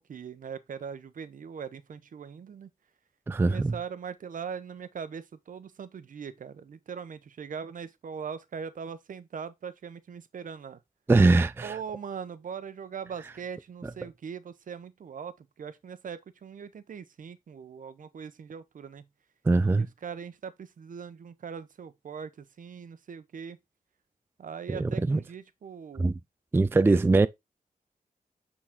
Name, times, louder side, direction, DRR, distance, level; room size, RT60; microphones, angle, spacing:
voice 1, 0.0-2.7 3.4-10.8 11.6-19.1 19.7-23.6 24.4-26.2 26.7-27.3, right 6 dB, 65° right, 0.8 m, -41 dB
voice 2, 3.3-3.7 11.1-11.8 13.8-13.9 19.5-19.9 24.7-25.2 26.0-26.2 26.5-27.3, right 3 dB, 15° right, 0.3 m, -22 dB
8.6 x 4.0 x 3.6 m
wide cardioid pair, 125°, 15 cm